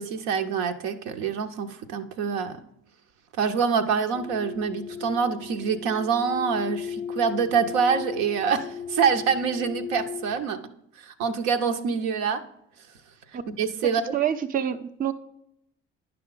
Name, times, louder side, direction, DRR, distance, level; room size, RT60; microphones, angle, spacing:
voice 1, 0.0-2.6 3.4-10.6 11.0-12.4 13.5-14.2, right 6 dB, 65° right, 6 dB, 0.8 m, -26 dB
sound 1, 4.1-10.5, left 7 dB, 80° left, 0.5 m, -36 dB
voice 2, 14.1-15.1, right 9 dB, 25° right, 8 dB, 0.6 m, -26 dB
10.0 x 5.8 x 3.8 m, 0.77 s
figure-of-eight pair, 50°, 37 cm